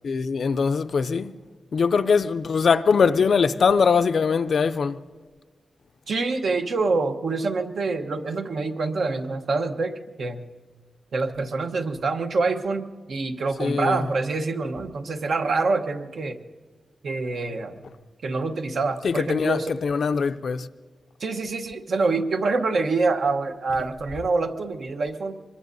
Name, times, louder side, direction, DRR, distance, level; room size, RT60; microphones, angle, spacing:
voice 1, 0.0-1.3 1.7-5.0 13.6-14.0 19.0-19.6 19.8-20.7, left 5 dB, 65° left, 0.5 m, -21 dB
voice 2, 6.1-10.4 11.1-16.4 17.0-17.7 18.2-19.7 21.2-25.4, right 3 dB, 70° right, 1.0 m, -26 dB
24.5 x 22.0 x 2.7 m
wide cardioid pair, 100°, 0 cm